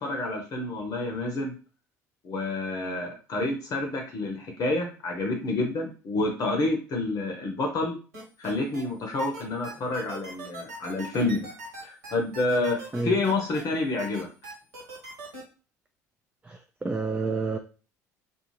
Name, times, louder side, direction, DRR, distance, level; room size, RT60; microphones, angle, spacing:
voice 1, 0.0-1.5 2.2-8.0 8.4-11.5 11.8-14.3, left 2 dB, 40° left, 2 dB, 0.7 m, -28 dB
sound 1, 8.1-8.8 9.2-13.6 14.0-15.4, right 2 dB, 70° right, 1.3 m, -41 dB
voice 2, 16.4-17.6, right 3 dB, 15° right, 6 dB, 0.3 m, -29 dB
2.4 x 2.3 x 3.1 m, 0.35 s
figure-of-eight pair, 60°, 9 cm